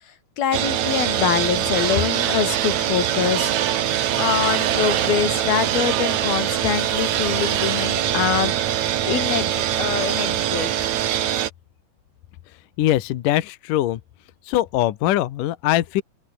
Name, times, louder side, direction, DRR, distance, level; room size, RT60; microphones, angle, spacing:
voice 1, 0.4-3.5 4.2-8.5 9.1-10.8, left 8 dB, 55° left, 4.6 m, -24 dB
sound 1, 0.5-11.5, right 11 dB, 70° right, 1.7 m, -23 dB
voice 2, 12.8-14.0 14.4-16.0, left 14 dB, 70° left, 2.0 m, -21 dB
open air
omnidirectional pair, 5.4 m